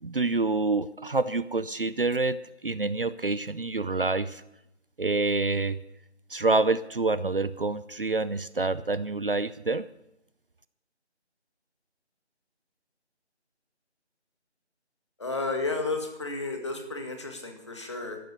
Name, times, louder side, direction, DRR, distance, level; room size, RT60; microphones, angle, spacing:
voice 1, 0.0-2.4 2.6-4.4 5.0-5.8 6.3-9.9, right 3 dB, 50° right, 16 dB, 0.7 m, -27 dB
voice 2, 15.2-18.2, left 3 dB, 25° left, 4 dB, 1.9 m, -32 dB
14.5 x 12.0 x 6.7 m, 0.85 s
figure-of-eight pair, 170°, 34 cm